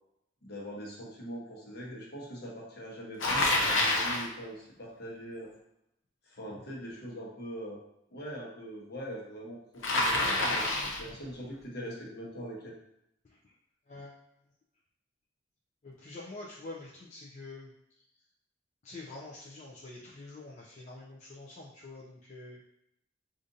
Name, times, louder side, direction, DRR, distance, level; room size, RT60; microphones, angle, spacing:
voice 1, 0.4-5.5 6.3-7.8 8.1-12.7, equal, 55° left, -3 dB, 1.0 m, -42 dB
Bicycle, 3.2-4.3 9.8-11.1, left 2 dB, 80° left, 0.7 m, -27 dB
voice 2, 10.7-11.2 13.3-13.5 13.9-14.2 15.8-17.7 18.8-22.6, left 2 dB, 40° left, -4 dB, 0.4 m, -46 dB
4.9 x 2.5 x 2.6 m, 0.80 s
head